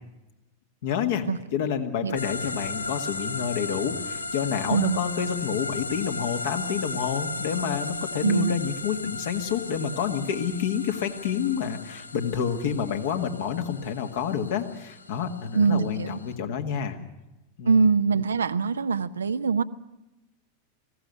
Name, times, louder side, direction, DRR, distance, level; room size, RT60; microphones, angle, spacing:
voice 1, 0.8-17.0 17.6-17.9, left 8 dB, 55° left, 6 dB, 1.8 m, -28 dB
sound 1, 2.2-16.3, left 3 dB, 80° left, 0.7 m, -36 dB
voice 2, 8.2-8.6 15.5-16.2 17.7-19.6, right 5 dB, 70° right, 12 dB, 0.7 m, -23 dB
20.0 x 16.5 x 8.1 m, 0.98 s
figure-of-eight pair, 90°, 0 cm